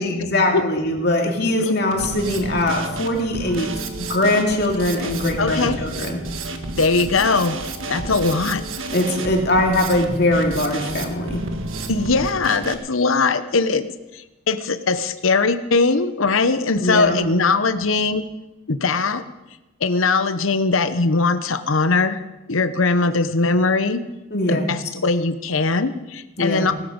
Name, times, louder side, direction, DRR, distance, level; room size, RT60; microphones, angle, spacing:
voice 1, 0.0-3.7 4.0-6.2 8.9-11.4 16.8-17.2 24.3-24.7 26.4-26.7, left 1 dB, 50° left, 2 dB, 2.6 m, -21 dB
Drum kit, 1.9-12.7, right 2 dB, 75° right, 1.5 m, -31 dB
voice 2, 5.4-5.8 6.8-7.6 7.9-8.6 11.9-13.9 14.1-18.3 18.7-19.2 19.8-22.2 22.5-24.0 24.5-26.7, left 3 dB, 80° left, 12 dB, 0.9 m, -20 dB
19.0 x 13.0 x 5.3 m, 1.0 s
head